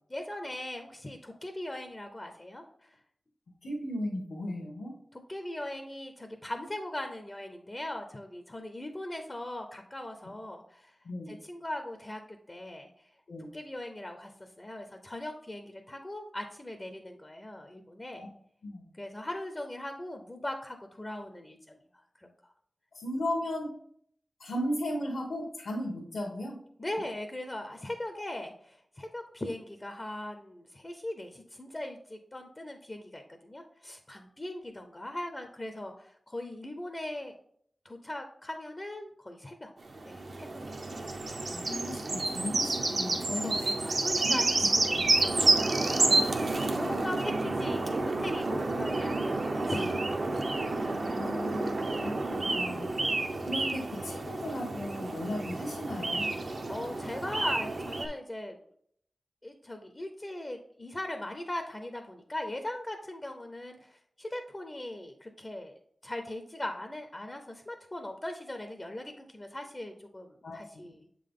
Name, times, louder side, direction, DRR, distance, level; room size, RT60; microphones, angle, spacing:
voice 1, 0.1-3.0 5.1-10.9 11.3-12.2 12.5-12.9 13.5-18.3 18.9-22.3 26.8-37.3 37.8-39.7 40.0-40.8 43.2-50.5 50.8-51.2 56.7-58.6 59.4-65.7 66.0-71.1, left 1 dB, 25° left, 5 dB, 0.5 m, -40 dB
voice 2, 3.6-4.9 11.0-11.4 13.3-13.5 18.1-18.3 18.6-18.9 22.9-23.7 24.4-26.6 41.5-43.5 44.2-44.4 45.0-45.1 46.6-47.0 51.0-52.9 53.5-56.3 70.4-70.9, left 1 dB, 80° left, -3 dB, 1.0 m, -36 dB
sound 1, 39.8-58.1, right 2 dB, 60° right, 0.7 m, -30 dB
7.1 x 3.8 x 3.6 m, 0.66 s
wide cardioid pair, 90°, 0 cm